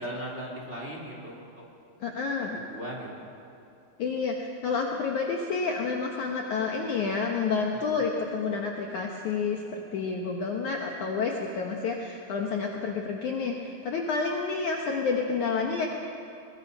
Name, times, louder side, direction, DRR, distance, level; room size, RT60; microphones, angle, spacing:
voice 1, 0.0-1.6 2.7-3.1 7.7-7.8, equal, 15° right, -2 dB, 2.8 m, -37 dB
voice 2, 2.0-2.6 4.0-15.9, left 4 dB, 85° left, 1 dB, 1.7 m, -29 dB
22.5 x 21.5 x 5.5 m, 2.5 s
omnidirectional pair, 5.4 m